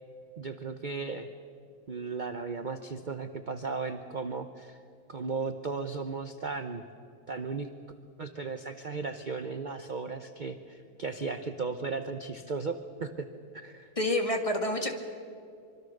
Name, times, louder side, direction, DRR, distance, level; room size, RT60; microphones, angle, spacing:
voice 1, 0.4-1.3 1.9-4.8 5.1-6.8 7.3-7.7 8.2-13.3 13.5-13.9, right 4 dB, 40° right, 8 dB, 0.7 m, -36 dB
voice 2, 14.0-15.0, left 1 dB, 20° left, 4 dB, 1.8 m, -28 dB
25.0 x 24.5 x 6.6 m, 2.4 s
omnidirectional pair, 1.9 m